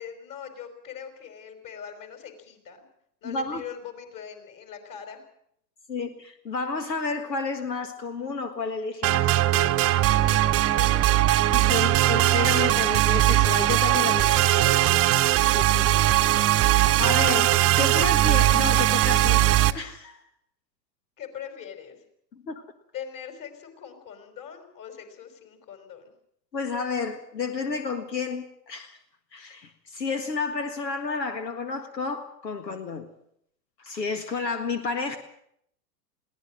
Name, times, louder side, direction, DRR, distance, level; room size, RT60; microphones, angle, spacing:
voice 1, 0.0-2.9 3.2-5.3 10.2-11.3 21.2-22.0 22.9-26.1, left 8 dB, 40° left, 7 dB, 5.2 m, -41 dB
voice 2, 3.2-3.6 5.9-9.7 11.5-15.0 15.5-16.1 16.7-19.4 19.7-20.2 22.3-22.6 26.5-29.0 29.3-33.1 33.8-35.2, left 4 dB, 90° left, 8 dB, 1.8 m, -31 dB
sound 1, 9.0-19.7, right 14 dB, 30° right, 0.9 m, -20 dB
22.0 x 17.5 x 7.6 m, 0.71 s
hypercardioid pair, 105°, 49 cm